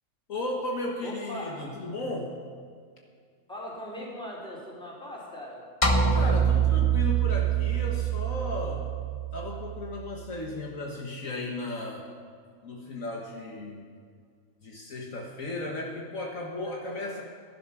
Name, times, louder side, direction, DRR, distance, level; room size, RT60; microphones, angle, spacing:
voice 1, 0.3-2.4 6.1-8.9 9.3-12.1 12.6-13.8 14.6-17.2, left 2 dB, 65° left, 0 dB, 1.6 m, -35 dB
voice 2, 1.0-1.5 3.5-5.6 16.7-17.2, left 1 dB, 5° left, -4 dB, 3.3 m, -40 dB
sound 1, 5.8-10.2, right 7 dB, 25° left, 1.0 m, -25 dB
14.5 x 11.0 x 6.0 m, 2.1 s
omnidirectional pair, 1.6 m